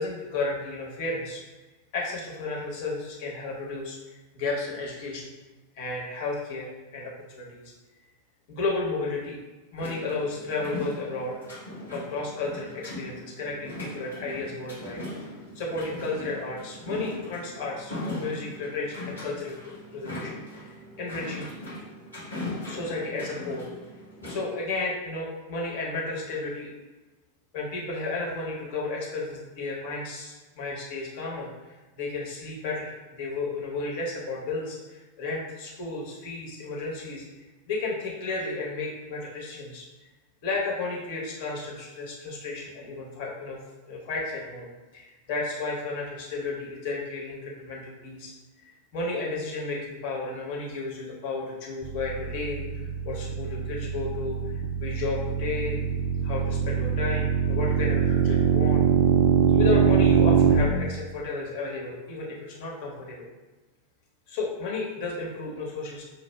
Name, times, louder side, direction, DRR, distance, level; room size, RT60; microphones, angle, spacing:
voice 1, 0.0-1.4 1.9-5.3 5.8-6.7 6.9-7.7 8.5-9.4 9.7-11.4 11.9-15.0 15.5-19.5 19.9-21.5 22.6-23.7 24.3-26.7 27.5-37.2 37.7-39.9 40.4-43.6 43.9-44.7 44.9-54.5 54.8-55.8 56.2-58.8 59.5-63.2 64.3-66.0, left 3 dB, 50° left, -3 dB, 1.0 m, -33 dB
sound 1, 9.8-24.5, left 1 dB, 80° left, 1.2 m, -39 dB
sound 2, 51.8-60.6, right 8 dB, 40° right, 0.4 m, -23 dB
5.3 x 2.4 x 2.2 m, 1.2 s
figure-of-eight pair, 90°, 0 cm